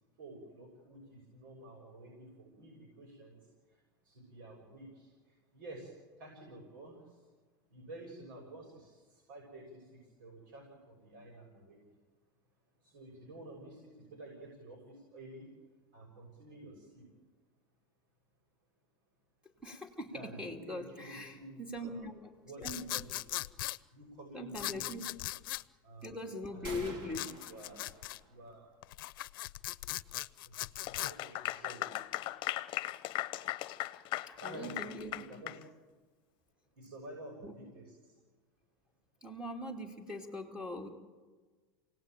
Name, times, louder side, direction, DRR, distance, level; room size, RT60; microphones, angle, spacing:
voice 1, 0.2-3.4 4.0-5.1 5.5-5.9 6.2-7.0 7.7-11.8 12.8-15.5 15.9-17.0 20.1-22.1 22.4-23.3 23.9-25.0 25.8-26.2 26.5-27.8 28.2-28.7 30.4-30.5 30.8-31.9 34.4-35.6 36.8-38.1, right 1 dB, 80° right, 0 dB, 6.8 m, -50 dB
voice 2, 19.4-22.3 22.6-22.9 24.3-25.1 26.0-27.3 34.3-35.2 37.4-37.5 39.2-40.9, left 1 dB, 5° right, 0 dB, 2.8 m, -41 dB
sound 1, 22.6-23.8 24.5-25.6 27.1-28.2 28.8-31.1, left 17 dB, 80° left, 0.7 m, -39 dB
sound 2, 26.6-28.5, right 2 dB, 45° right, 5.0 m, -48 dB
Clapping / Applause, 30.8-35.6, left 17 dB, 45° left, 1.0 m, -38 dB
28.5 x 18.5 x 9.2 m, 1.4 s
supercardioid pair, 130°, 11 cm